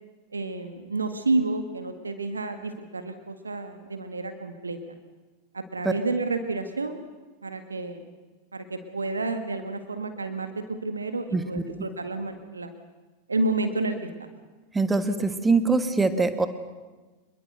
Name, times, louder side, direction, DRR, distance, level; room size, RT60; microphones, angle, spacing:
voice 1, 0.3-4.8 5.5-7.0 7.4-8.1 8.5-12.7 13.3-14.1, right 2 dB, 75° right, 8 dB, 1.9 m, -30 dB
voice 2, 11.3-11.6 14.7-16.5, right 3 dB, 10° right, 10 dB, 1.7 m, -23 dB
25.5 x 22.0 x 6.7 m, 1.2 s
figure-of-eight pair, 90°, 0 cm